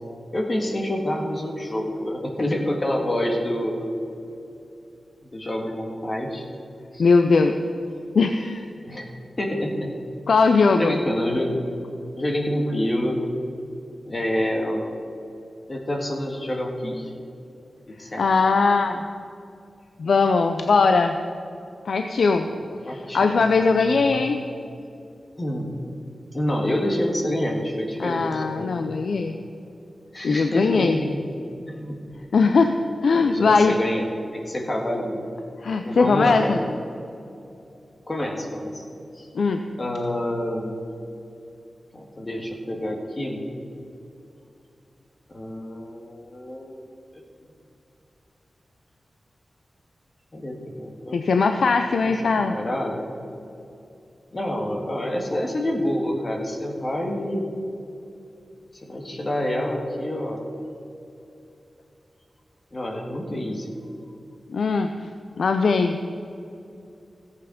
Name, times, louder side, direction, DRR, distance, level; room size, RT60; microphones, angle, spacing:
voice 1, 0.3-3.9 5.3-6.5 6.9-7.0 8.8-9.0 9.4-10.0 10.8-11.6 12.2-13.2 14.1-14.9 15.7-17.1 17.9-18.4 22.5-22.6 22.9-24.2 25.4-25.7 26.3-28.8 30.1-31.1 31.7-32.0 32.4-32.6 33.2-35.3 35.8-36.7 38.1-38.8 39.1-39.3 39.8-40.8 41.9-43.4 45.3-46.9 47.1-47.2 50.3-51.2 52.5-53.1 54.3-57.5 58.8-60.4 62.7-63.7, left 1 dB, 35° left, 1 dB, 1.7 m, -27 dB
voice 2, 7.0-7.5 8.1-8.6 10.3-11.0 18.2-19.0 20.0-21.2 21.8-22.5 22.9-24.4 28.0-29.4 30.2-31.0 32.3-32.8 33.0-33.7 35.6-36.6 39.3-39.6 51.1-52.5 64.5-64.9 65.4-66.0, left 4 dB, 80° left, 6 dB, 0.5 m, -20 dB
14.0 x 8.3 x 5.2 m, 2.7 s
wide cardioid pair, 70°, 0 cm